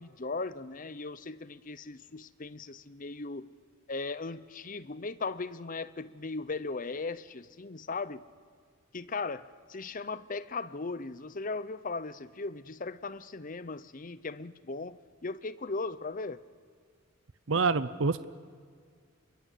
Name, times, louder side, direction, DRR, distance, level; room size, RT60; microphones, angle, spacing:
voice 1, 0.0-3.5 3.9-8.2 8.9-16.4, left 3 dB, 40° left, 15 dB, 0.7 m, -38 dB
voice 2, 17.5-18.3, right 4 dB, 60° right, 14 dB, 0.7 m, -27 dB
28.0 x 22.5 x 8.4 m, 2.1 s
head